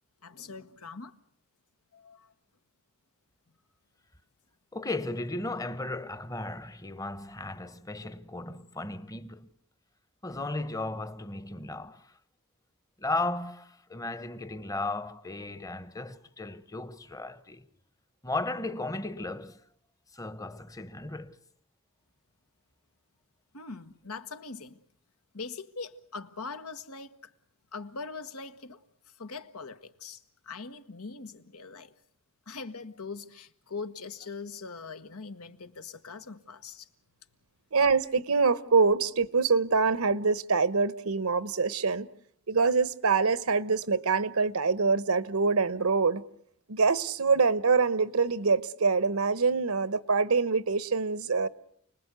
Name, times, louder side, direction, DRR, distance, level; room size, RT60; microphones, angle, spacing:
voice 1, 0.2-1.1 1.9-2.3 23.5-24.8 25.3-27.3 27.7-28.8 29.1-31.9 32.5-36.9, left 4 dB, 85° left, 1.4 m, -42 dB
voice 2, 4.7-9.5 10.2-12.2 13.0-17.7 18.2-19.6 20.1-21.4, left 2 dB, 15° left, 1.0 m, -35 dB
voice 3, 37.7-42.1 42.5-46.2 46.7-51.5, right 4 dB, 75° right, 1.0 m, -25 dB
29.5 x 20.0 x 8.2 m
head